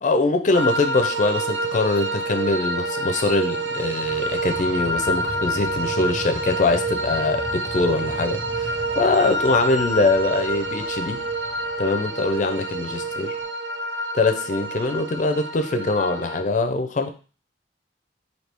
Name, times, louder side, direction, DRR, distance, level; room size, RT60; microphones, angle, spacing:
voice 1, 0.0-11.3 11.8-13.3 14.1-17.1, left 3 dB, 45° left, 7 dB, 0.4 m, -23 dB
sound 1, 0.5-16.4, right 1 dB, 90° right, 0.5 m, -27 dB
sound 2, 3.7-13.4, equal, 50° right, 1.7 m, -39 dB
4.3 x 2.7 x 3.3 m, 0.36 s
head